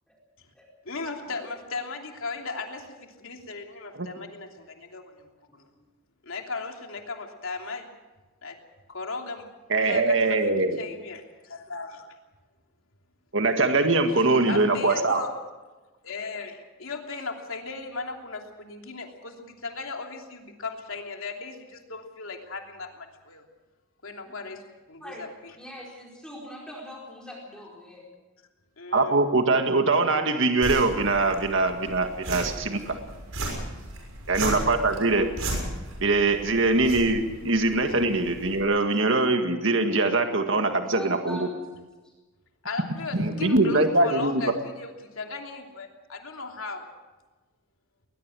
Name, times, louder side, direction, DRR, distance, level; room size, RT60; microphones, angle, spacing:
voice 1, 0.8-5.3 5.5-5.6 6.2-7.9 8.4-8.6 8.9-10.4 10.8-12.1 14.1-15.3 16.0-23.4 24.0-24.6 24.9-25.6 28.8-29.2 34.6-34.7 42.6-46.9, left 3 dB, 70° left, 2 dB, 3.0 m, -37 dB
voice 2, 9.7-10.8 13.3-15.2 28.9-33.0 34.3-35.3 36.0-41.4 43.1-44.4, right 2 dB, 60° right, 5 dB, 1.9 m, -23 dB
voice 3, 25.6-28.1 40.8-41.7 42.0-42.1, equal, 5° left, -3 dB, 4.7 m, -42 dB
sound 1, 30.6-38.6, right 1 dB, 85° right, 6.6 m, -35 dB
20.5 x 20.5 x 6.3 m, 1.2 s
head